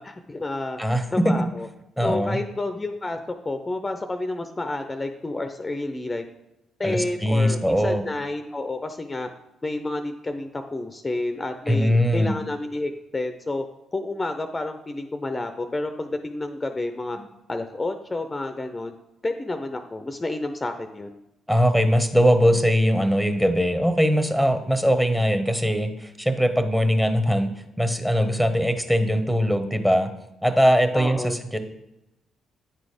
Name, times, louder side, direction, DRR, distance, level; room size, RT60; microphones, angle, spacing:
voice 1, 0.0-0.8 1.1-1.7 2.0-6.2 6.8-9.3 9.6-13.6 13.9-17.2 17.5-18.9 19.2-21.1 30.9-31.4, left 2 dB, 25° left, 7 dB, 0.6 m, -30 dB
voice 2, 0.8-1.4 2.0-2.4 6.8-8.0 11.7-12.4 17.2-17.3 21.5-27.5 27.8-30.1 30.4-31.6, equal, 5° right, 8 dB, 1.1 m, -21 dB
9.2 x 4.0 x 5.0 m, 0.90 s
hypercardioid pair, 45°, 0 cm